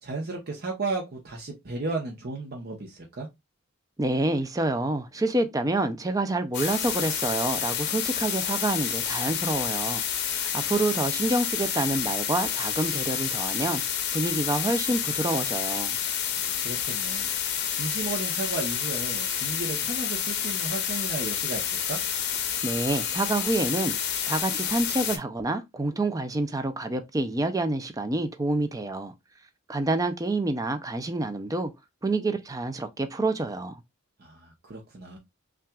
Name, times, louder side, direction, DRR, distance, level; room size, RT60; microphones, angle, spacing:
voice 1, 0.0-3.3 16.3-17.3 17.7-22.0 34.2-35.2, right 3 dB, 50° right, 0.8 m, -34 dB
voice 2, 4.0-13.8 14.1-16.0 22.6-23.9 24.3-29.1 29.7-31.7 32.0-33.7, right 2 dB, 15° right, 0.4 m, -27 dB
sound 1, 6.5-25.2, left 8 dB, 55° left, 0.7 m, -29 dB
5.6 x 2.5 x 2.3 m
head